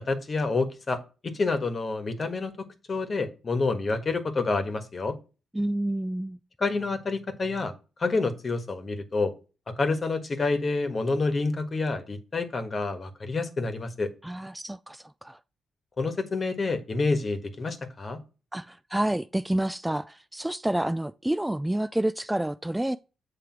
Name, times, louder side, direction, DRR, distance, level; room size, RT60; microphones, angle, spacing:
voice 1, 0.0-5.2 6.6-7.7 8.0-9.3 9.8-14.1 16.0-18.2, left 3 dB, 40° left, 1.4 m, -28 dB
voice 2, 5.5-6.4 14.2-15.4 18.5-23.0, right 1 dB, 10° right, 0.3 m, -29 dB
7.5 x 3.3 x 5.9 m
cardioid pair, 65°, 0 cm